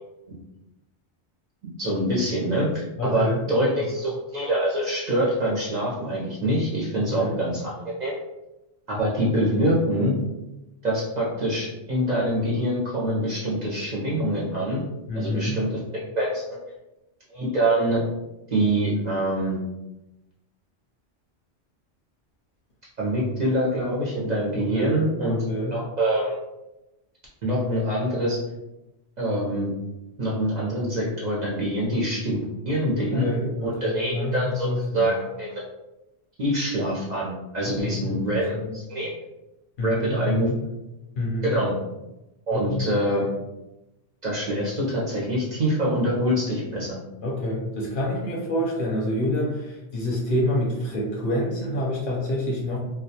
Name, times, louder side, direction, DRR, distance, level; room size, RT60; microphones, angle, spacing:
voice 1, 1.8-8.2 8.9-10.1 10.8-14.8 15.1-15.7 16.2-16.4 17.3-18.0 18.5-19.6 23.0-25.4 25.7-26.4 27.4-28.4 29.2-29.7 30.2-33.3 33.6-34.7 34.9-35.6 36.4-39.1 39.8-40.5 41.4-41.7 42.5-43.3 44.2-47.0, right 1 dB, 55° right, -5 dB, 0.5 m, -25 dB
voice 2, 3.0-3.6 7.0-7.4 15.1-15.6 24.6-25.0 25.3-25.8 32.9-35.1 37.6-38.2 38.5-38.8 39.8-40.5 41.2-41.5 42.5-42.9 47.2-52.8, left 1 dB, 60° left, -3 dB, 0.6 m, -27 dB
2.2 x 2.1 x 2.7 m, 0.96 s
omnidirectional pair, 1.2 m